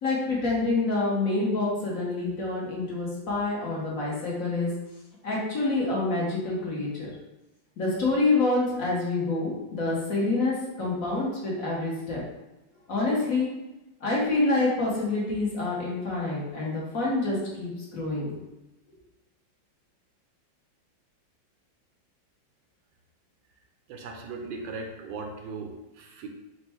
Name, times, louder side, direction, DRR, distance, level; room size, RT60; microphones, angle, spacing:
voice 1, 0.0-4.7 5.2-7.1 7.8-12.2 12.9-13.5 14.0-18.3, left 2 dB, 55° left, -5 dB, 1.3 m, -27 dB
voice 2, 23.9-26.3, right 3 dB, 75° right, 3 dB, 1.2 m, -38 dB
4.4 x 2.2 x 4.2 m, 1.0 s
omnidirectional pair, 2.0 m